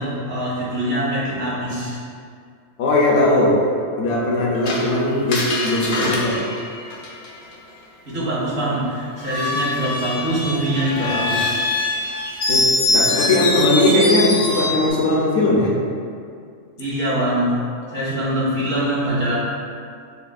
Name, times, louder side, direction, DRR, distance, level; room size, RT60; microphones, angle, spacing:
voice 1, 0.0-2.0 8.1-11.6 16.8-17.6 17.9-19.4, right 1 dB, 70° right, -8 dB, 1.6 m, -23 dB
voice 2, 2.8-3.6 4.0-6.4 12.5-15.8, left 1 dB, 70° left, -3 dB, 1.0 m, -19 dB
Screech, 4.7-7.5 9.2-14.9, left 2 dB, 50° left, 0.6 m, -23 dB
6.9 x 2.4 x 2.5 m, 2.3 s
omnidirectional pair, 1.4 m